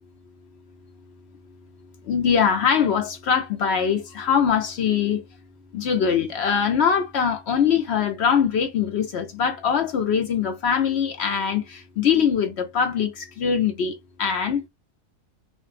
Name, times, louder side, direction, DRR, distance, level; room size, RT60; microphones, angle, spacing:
voice 1, 2.1-5.2 5.7-14.7, left 7 dB, 65° left, 0.7 m, -22 dB
2.5 x 2.1 x 3.1 m
omnidirectional pair, 1.5 m